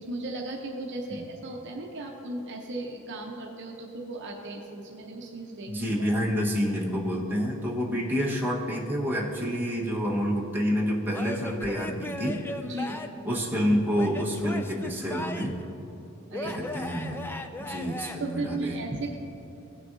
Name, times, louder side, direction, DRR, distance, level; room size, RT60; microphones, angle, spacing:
voice 1, 0.0-5.7 12.6-13.0 16.3-16.9 18.2-19.2, right 2 dB, 50° right, 1 dB, 0.8 m, -36 dB
voice 2, 5.7-12.4 13.2-15.5 16.4-17.2 17.6-18.8, equal, 10° right, -5 dB, 1.2 m, -28 dB
Male speech man speaking / Yell / Laughter, 11.1-13.3 13.9-15.7 16.3-18.2, left 1 dB, 10° left, 0.3 m, -37 dB
16.0 x 6.6 x 2.7 m, 3.0 s
head